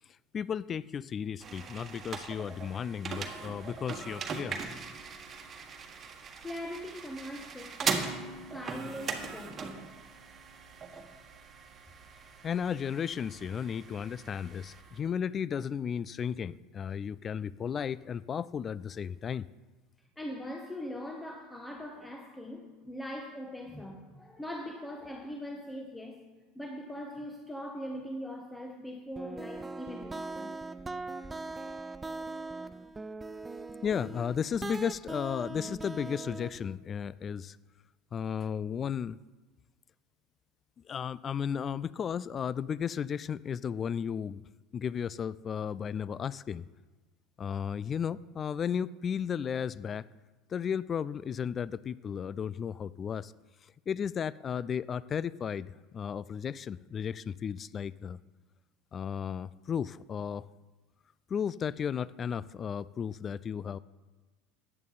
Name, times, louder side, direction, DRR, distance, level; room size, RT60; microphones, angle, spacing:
voice 1, 0.3-4.6 12.4-19.5 33.8-37.6 38.1-39.2 40.9-44.4 44.7-46.7 47.4-50.0 50.5-53.3 53.9-58.2 58.9-60.5 61.3-63.8, left 7 dB, 35° left, 0.3 m, -34 dB
sound 1, 1.4-15.0, right 5 dB, 35° right, 1.5 m, -40 dB
voice 2, 6.4-8.2 8.5-10.0 20.2-26.3 26.5-30.5, equal, 10° left, 1.2 m, -41 dB
sound 2, 29.2-36.8, right 3 dB, 20° right, 0.6 m, -41 dB
14.0 x 9.8 x 4.0 m
hypercardioid pair, 75°, 0 cm